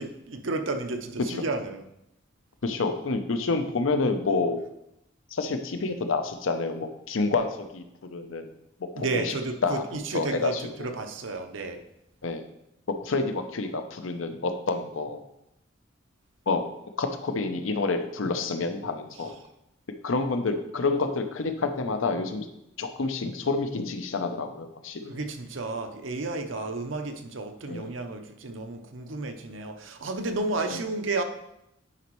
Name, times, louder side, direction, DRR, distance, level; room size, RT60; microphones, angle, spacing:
voice 1, 0.0-1.9 8.9-11.8 19.2-19.3 25.1-31.2, right 3 dB, 75° right, 6 dB, 0.7 m, -32 dB
voice 2, 2.6-4.6 5.3-7.8 8.1-8.5 8.8-9.3 9.6-9.8 10.1-10.6 12.2-12.5 13.0-15.2 16.5-16.6 17.0-19.3 20.0-22.5 22.8-25.1 27.7-27.9 30.7-30.8, left 3 dB, 80° left, 7 dB, 0.7 m, -28 dB
9.8 x 5.2 x 3.1 m, 0.83 s
head